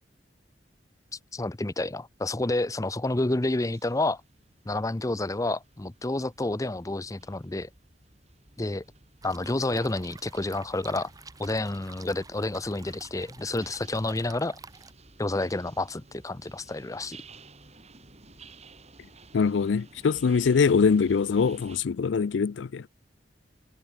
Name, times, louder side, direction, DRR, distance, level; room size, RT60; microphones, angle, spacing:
voice 1, 1.3-4.2 4.7-7.7 8.6-8.8 9.2-11.1 11.4-14.6 15.2-17.2, left 2 dB, 20° left, 0.7 m, -29 dB
sound 1, 3.2-21.8, right 3 dB, 35° right, 3.4 m, -54 dB
sound 2, 9.2-14.9, right 3 dB, 20° right, 2.8 m, -49 dB
voice 2, 19.3-22.9, left 5 dB, 85° left, 0.4 m, -23 dB
head